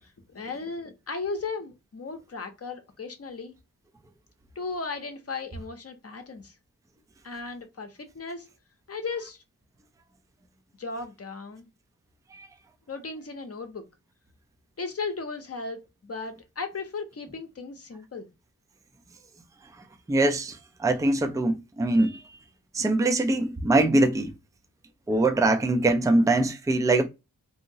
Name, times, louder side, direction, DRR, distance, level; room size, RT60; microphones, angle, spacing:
voice 1, 0.0-3.5 4.6-6.5 7.2-8.5 8.9-9.4 10.8-11.7 12.9-13.9 14.8-18.3, left 4 dB, 40° left, 0.7 m, -36 dB
voice 2, 20.1-22.2 22.7-24.3 25.1-27.1, right 2 dB, 10° right, 0.4 m, -23 dB
2.8 x 2.8 x 2.7 m
wide cardioid pair, 85°, 35 cm